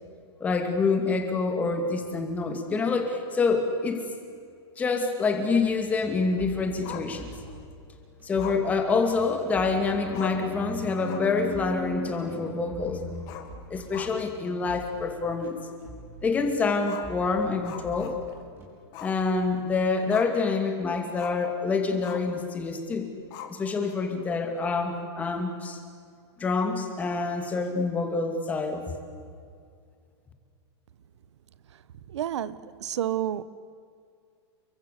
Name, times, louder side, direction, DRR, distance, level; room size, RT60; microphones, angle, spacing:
voice 1, 0.4-4.0 4.8-7.3 8.2-13.4 13.7-15.6 16.2-18.2 19.0-23.1 23.5-25.8 26.4-28.9, left 4 dB, 10° left, 5 dB, 2.3 m, -27 dB
sound 1, 5.6-18.7, right 1 dB, 15° right, 5.1 m, -47 dB
Growling, 6.8-7.6 8.4-9.6 9.9-10.0 10.1-10.6 10.9-11.4 11.7-11.8 13.2-14.4 14.8-14.9 15.4-15.5 16.8-18.5 18.9-19.2 19.5-20.5 21.2-21.5 22.0-22.4 23.3-23.9, left 10 dB, 30° left, 2.1 m, -42 dB
voice 2, 32.1-33.4, right 11 dB, 85° right, 16 dB, 1.2 m, -30 dB
29.5 x 23.0 x 8.4 m, 2.3 s
supercardioid pair, 175°, 14 cm